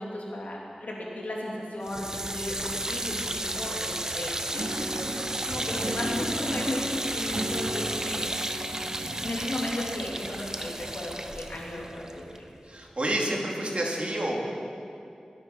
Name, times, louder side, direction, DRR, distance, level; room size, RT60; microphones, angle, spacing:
voice 1, 0.0-5.1 5.4-8.3 9.2-12.4, left 1 dB, 80° left, -3 dB, 3.1 m, -35 dB
sound 1, 1.8-12.9, right 1 dB, 25° right, 0.8 m, -33 dB
Guitar, 4.5-10.4, right 1 dB, 80° right, 2.3 m, -36 dB
voice 2, 12.7-14.3, right 1 dB, 50° right, -2 dB, 2.9 m, -29 dB
22.5 x 9.0 x 5.6 m, 2.5 s
wide cardioid pair, 55°, 3 cm